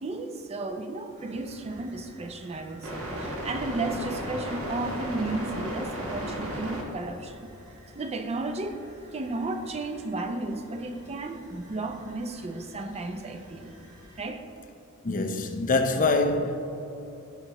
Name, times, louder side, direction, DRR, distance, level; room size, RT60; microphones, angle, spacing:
voice 1, 0.0-7.5 7.9-13.7 14.2-14.5, right 2 dB, 30° right, 0.5 m, -34 dB
sound 1, 1.2-14.2, equal, 65° right, 1.5 m, -39 dB
voice 2, 15.0-16.6, left 3 dB, 35° left, 0.6 m, -24 dB
16.0 x 5.6 x 2.9 m
head